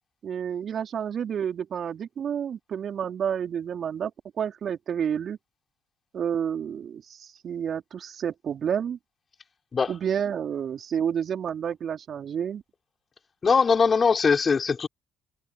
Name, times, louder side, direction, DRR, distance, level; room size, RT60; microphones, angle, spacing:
voice 1, 0.2-4.1 4.4-5.4 6.1-9.0 9.9-12.6, right 8 dB, 50° right, 3.8 m, -30 dB
voice 2, 13.4-14.9, left 5 dB, 40° left, 5.7 m, -21 dB
hypercardioid pair, 50°, 0 cm